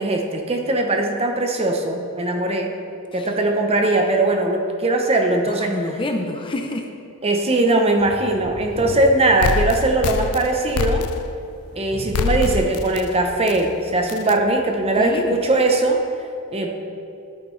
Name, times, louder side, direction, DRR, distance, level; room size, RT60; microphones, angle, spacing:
voice 1, 0.0-2.7 3.1-5.8 7.2-11.1 11.8-16.0 16.5-16.7, right 2 dB, 25° right, 3 dB, 0.7 m, -20 dB
voice 2, 5.5-6.9 15.0-15.4, left 1 dB, 20° left, 3 dB, 0.6 m, -28 dB
sound 1, 8.0-15.8, equal, 60° right, 1.8 m, -39 dB
sound 2, 9.4-11.5 12.1-13.1 13.5-13.6 14.1-14.3, left 5 dB, 75° left, 0.4 m, -24 dB
11.0 x 9.1 x 3.2 m, 2.7 s
head